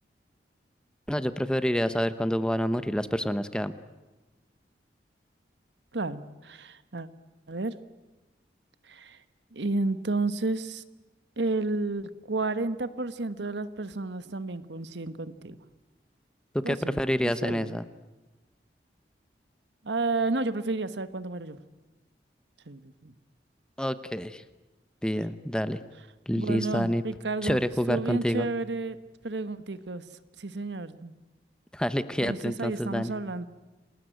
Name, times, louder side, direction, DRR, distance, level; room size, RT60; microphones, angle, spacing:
voice 1, 1.1-3.7 16.5-17.8 23.8-24.4 25.0-25.8 26.3-27.0 27.4-28.5 31.7-33.1, equal, 5° left, 12 dB, 0.9 m, -28 dB
voice 2, 5.9-7.1 7.5-7.8 8.9-9.2 9.5-10.8 11.4-15.6 16.6-17.8 19.8-21.6 22.7-23.1 26.4-27.6 27.9-29.0 29.2-30.0 30.4-31.1 32.2-33.5, right 2 dB, 85° right, 13 dB, 1.2 m, -31 dB
29.0 x 20.0 x 9.2 m, 1.1 s
head